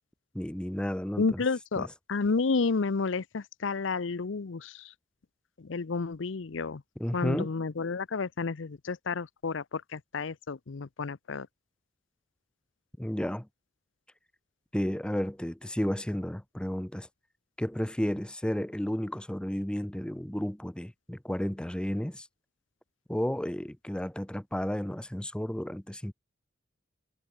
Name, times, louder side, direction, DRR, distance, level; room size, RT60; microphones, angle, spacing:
voice 1, 0.3-1.4 1.8-1.9 7.0-7.5 13.0-13.5 14.7-17.1 17.6-22.3 23.1-26.1, equal, 5° left, 0.5 m, -32 dB
voice 2, 1.2-4.9 5.6-6.8 7.1-11.5, left 4 dB, 75° left, 0.6 m, -31 dB
head